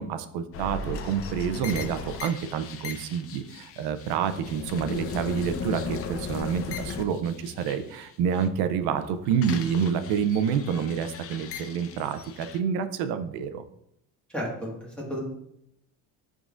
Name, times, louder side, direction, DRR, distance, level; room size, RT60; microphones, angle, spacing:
voice 1, 0.0-13.6, right 7 dB, 80° right, 10 dB, 0.7 m, -28 dB
sound 1, 0.5-8.5 8.8-12.6, left 5 dB, 40° left, 0.5 m, -37 dB
voice 2, 14.3-15.2, equal, 5° left, -4 dB, 1.7 m, -33 dB
10.5 x 3.8 x 2.5 m, 0.77 s
cardioid pair, 150°, 38 cm